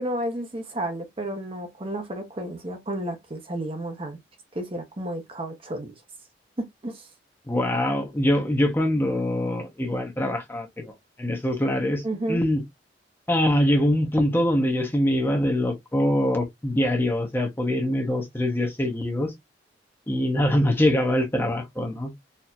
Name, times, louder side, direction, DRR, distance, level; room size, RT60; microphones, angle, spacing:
voice 1, 0.0-4.2 4.5-5.9 6.8-7.0 12.0-12.4, right 1 dB, 30° right, 0.8 m, -31 dB
voice 2, 7.5-10.9 11.2-12.0 12.3-12.6 13.3-19.3 20.1-22.1, left 1 dB, 10° left, 0.9 m, -23 dB
4.3 x 2.8 x 2.4 m
head